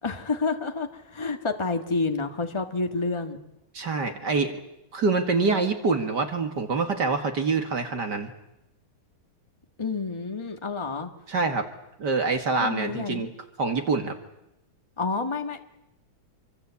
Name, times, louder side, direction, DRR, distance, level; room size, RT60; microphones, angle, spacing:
voice 1, 0.0-3.4 9.8-11.1 12.6-13.3 15.0-15.6, left 4 dB, 15° left, 5 dB, 1.7 m, -29 dB
voice 2, 3.7-4.6 4.9-8.3 11.3-11.6 12.0-13.3 13.6-14.1, right 4 dB, 55° right, 6 dB, 2.5 m, -25 dB
26.5 x 24.5 x 8.4 m, 0.85 s
omnidirectional pair, 2.2 m